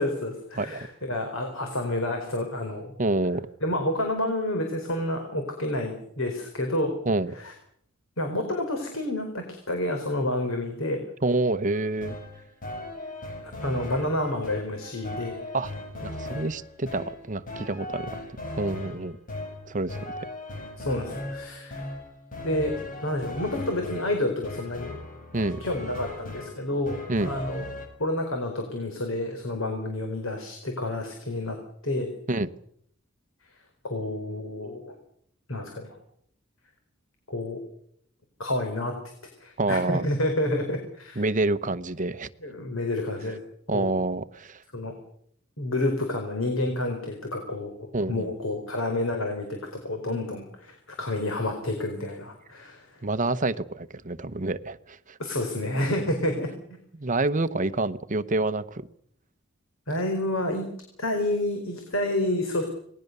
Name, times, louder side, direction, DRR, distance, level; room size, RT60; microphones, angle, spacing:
voice 1, 0.0-2.9 3.6-6.9 7.4-7.5 8.2-11.0 13.4-15.4 20.8-21.9 22.4-22.8 23.0-25.0 25.6-27.7 28.0-31.6 31.8-32.1 33.8-34.9 35.5-35.9 37.3-37.6 38.4-38.9 39.4-41.2 42.4-43.4 43.7-43.9 44.7-44.9 45.6-53.0 55.2-56.5 59.9-60.7 61.0-62.7, left 1 dB, 80° left, 4 dB, 4.6 m, -29 dB
voice 2, 0.6-0.9 3.0-3.5 7.1-7.3 11.2-12.2 15.5-15.7 16.0-18.2 18.6-19.2 19.7-20.3 25.3-25.6 27.1-27.3 32.3-32.5 39.6-40.0 41.2-42.3 43.7-44.6 47.9-48.3 53.0-55.2 56.9-58.9, right 2 dB, 40° right, 12 dB, 1.0 m, -27 dB
sound 1, 11.7-27.9, left 1 dB, 40° left, 6.4 m, -38 dB
27.5 x 20.0 x 6.8 m, 0.69 s
head